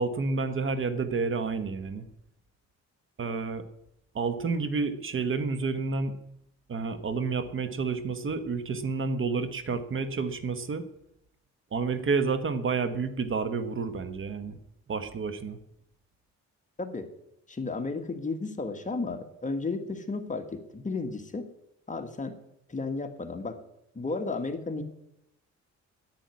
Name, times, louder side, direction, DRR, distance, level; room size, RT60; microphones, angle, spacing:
voice 1, 0.0-2.0 3.2-3.7 4.1-6.2 6.7-10.9 11.7-14.6 14.9-15.6, right 4 dB, 45° right, 11 dB, 1.3 m, -30 dB
voice 2, 17.5-21.5 21.9-22.3 22.7-23.6 24.0-24.8, left 3 dB, 25° left, 5 dB, 1.7 m, -33 dB
10.5 x 9.1 x 9.5 m, 0.82 s
cardioid pair, 95°, 29 cm